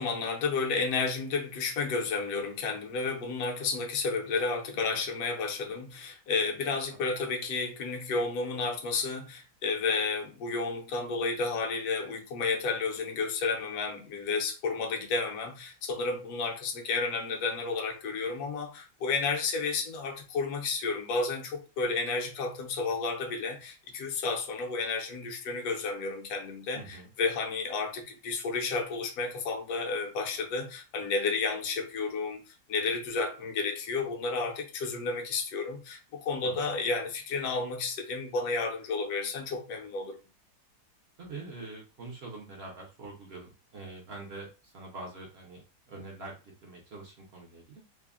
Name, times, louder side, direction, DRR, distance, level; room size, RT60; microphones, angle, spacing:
voice 1, 0.0-40.2, left 4 dB, 70° left, 1.1 m, -31 dB
voice 2, 26.7-27.1 36.4-36.6 41.2-47.8, right 3 dB, 60° right, 0.7 m, -45 dB
3.5 x 2.0 x 2.3 m
omnidirectional pair, 1.8 m